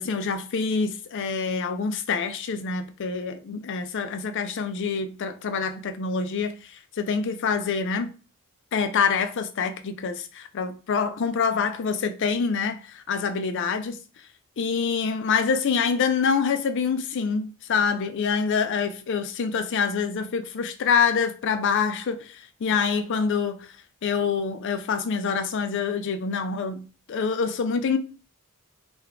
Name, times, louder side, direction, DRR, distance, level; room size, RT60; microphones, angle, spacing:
voice 1, 0.0-6.7 7.0-8.1 8.7-14.0 14.6-23.6 24.0-28.0, left 5 dB, 55° left, 0.4 m, -26 dB
3.4 x 2.3 x 3.5 m
head